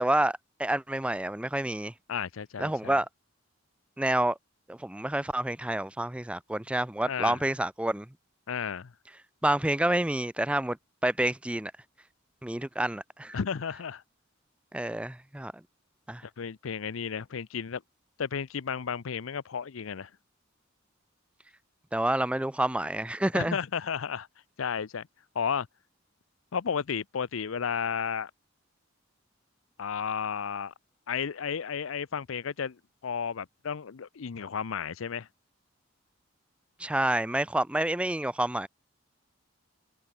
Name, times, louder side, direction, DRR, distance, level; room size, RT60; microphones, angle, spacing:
voice 1, 0.0-1.9 2.6-3.1 4.0-4.4 4.7-8.1 9.4-10.8 11.0-11.7 12.4-13.4 14.7-15.5 16.1-16.2 21.9-23.6 36.8-38.7, right 1 dB, 5° right, 0.5 m, -28 dB
voice 2, 2.1-3.0 7.0-7.4 8.5-8.9 13.3-14.0 16.2-17.8 18.2-20.1 23.3-24.3 24.6-25.1 25.3-25.7 26.5-28.3 29.8-30.7 31.1-35.3, left 7 dB, 90° left, 0.6 m, -33 dB
head